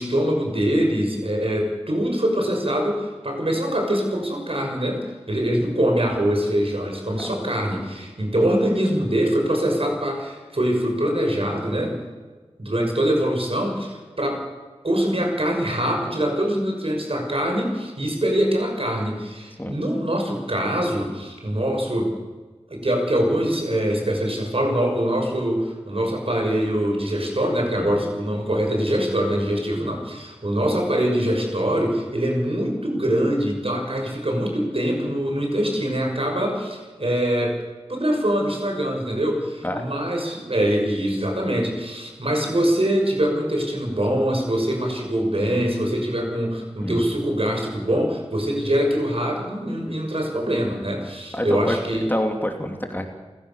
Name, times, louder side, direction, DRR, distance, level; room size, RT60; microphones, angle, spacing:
voice 1, 0.0-12.0 12.6-14.4 14.8-22.1 22.7-37.6 37.9-52.1, equal, 55° right, 2 dB, 6.4 m, -23 dB
voice 2, 51.3-51.8 52.1-53.1, equal, 15° left, 4 dB, 2.9 m, -27 dB
28.5 x 16.0 x 7.2 m, 1.3 s
wide cardioid pair, 45°, 11 cm